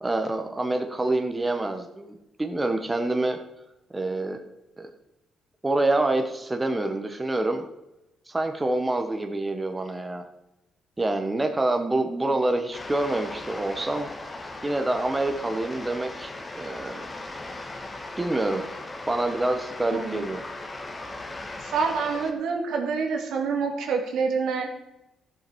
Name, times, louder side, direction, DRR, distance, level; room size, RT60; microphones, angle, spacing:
voice 1, 0.0-3.4 3.9-4.4 4.8-4.9 5.6-7.7 8.3-10.2 11.0-14.1 14.6-17.1 18.2-18.6 19.1-20.4, right 2 dB, 15° right, 5 dB, 1.3 m, -26 dB
sound 1, 12.7-22.3, left 2 dB, 25° left, 1.7 m, -38 dB
voice 2, 19.9-20.2 21.6-24.7, right 5 dB, 80° right, 3 dB, 2.1 m, -27 dB
13.5 x 7.6 x 4.7 m, 0.92 s
cardioid pair, 90°, 0 cm